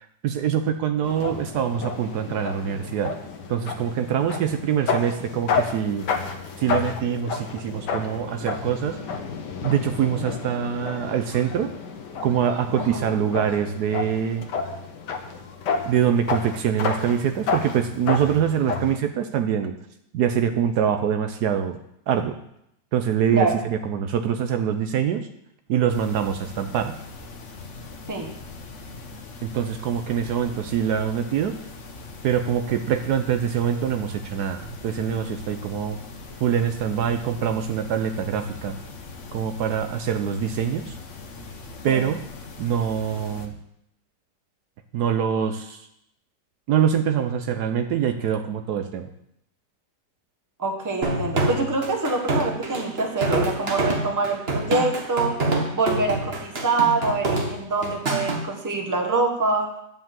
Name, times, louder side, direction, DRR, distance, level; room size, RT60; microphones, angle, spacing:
voice 1, 0.2-3.1 3.5-6.1 6.6-9.0 9.6-11.7 12.2-14.4 15.9-19.7 20.1-21.8 22.1-22.4 22.9-25.3 25.7-26.9 29.4-31.6 32.2-36.0 36.4-38.8 39.3-40.9 41.8-42.2 42.6-43.5 44.9-45.8 46.7-49.1, right 8 dB, 75° right, 8 dB, 1.2 m, -24 dB
sound 1, 1.0-19.0, left 5 dB, 80° left, 1.6 m, -31 dB
voice 2, 12.8-13.1 23.3-23.6 28.1-28.3 41.9-42.1 50.6-55.4 55.7-59.7, right 3 dB, 15° right, 3 dB, 1.0 m, -25 dB
soil silence, 25.9-43.5, left 4 dB, 50° left, 1.2 m, -41 dB
sound 2, 51.0-58.4, right 2 dB, 40° right, 1.4 m, -26 dB
9.5 x 5.5 x 7.4 m, 0.77 s
omnidirectional pair, 1.8 m